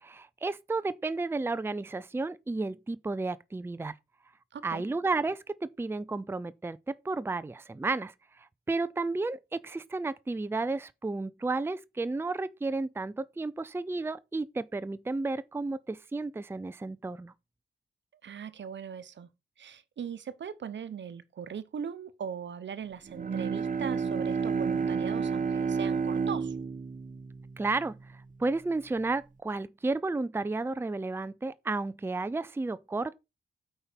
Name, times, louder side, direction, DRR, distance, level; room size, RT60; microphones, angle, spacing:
voice 1, 0.0-3.9 4.6-8.1 8.4-17.3 27.6-33.2, right 3 dB, 10° right, 0.5 m, -32 dB
voice 2, 4.5-4.8 18.2-19.3 19.6-26.5, right 7 dB, 70° right, 0.9 m, -39 dB
Bowed string instrument, 23.1-28.4, right 5 dB, 45° right, 1.1 m, -31 dB
8.6 x 5.7 x 5.2 m
wide cardioid pair, 165°, 19 cm